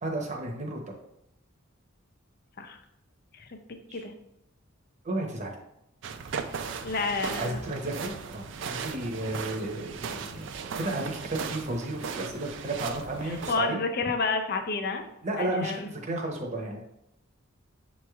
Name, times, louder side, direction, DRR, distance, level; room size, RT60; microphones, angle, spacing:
voice 1, 0.0-0.8 3.9-4.0 5.0-5.5 7.4-13.8 15.2-16.8, right 2 dB, 35° right, 1 dB, 0.8 m, -33 dB
sound 1, 6.0-13.5, right 6 dB, 65° right, 0.4 m, -37 dB
voice 2, 6.8-7.6 13.5-15.0 15.4-15.9, left 3 dB, 50° left, 6 dB, 0.5 m, -30 dB
7.0 x 3.1 x 2.3 m, 0.84 s
head